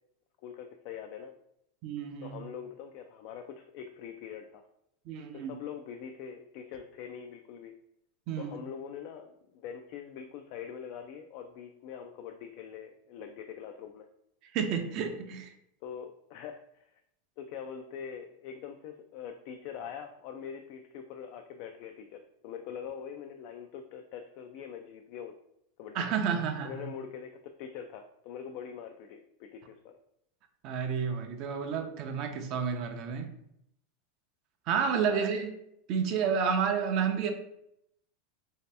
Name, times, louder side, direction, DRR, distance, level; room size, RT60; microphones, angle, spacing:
voice 1, 0.4-1.3 2.2-4.6 5.3-7.7 8.4-14.1 15.8-17.0 17.4-25.3 25.8-26.1 26.6-30.0 35.0-35.2, left 7 dB, 55° left, 5 dB, 0.3 m, -43 dB
voice 2, 1.8-2.4 5.1-5.6 8.3-8.6 14.5-15.5 25.9-26.9 30.6-33.3 34.7-35.5 35.9-37.3, right 6 dB, 50° right, 6 dB, 0.5 m, -30 dB
3.2 x 2.8 x 3.3 m, 0.76 s
supercardioid pair, 125°, 0 cm